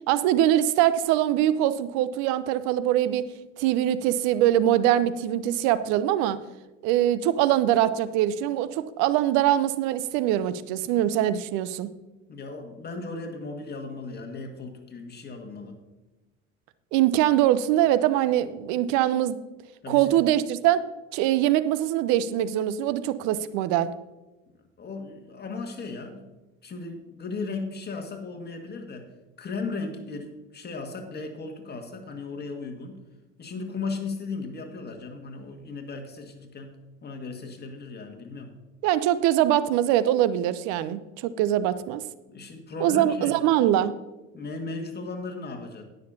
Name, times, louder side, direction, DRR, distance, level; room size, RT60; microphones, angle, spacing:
voice 1, 0.1-3.3 3.6-6.4 6.8-11.9 16.9-19.3 19.9-20.8 21.1-23.9 38.8-42.0 42.8-43.9, right 12 dB, 50° right, 14 dB, 0.7 m, -23 dB
voice 2, 12.3-15.8 19.8-20.1 24.8-26.2 26.6-29.1 29.4-33.0 33.4-36.7 37.0-38.5 42.3-43.4 44.3-45.8, left 3 dB, 25° left, 4 dB, 1.8 m, -36 dB
19.5 x 6.7 x 2.7 m, 1.1 s
figure-of-eight pair, 70°, 37 cm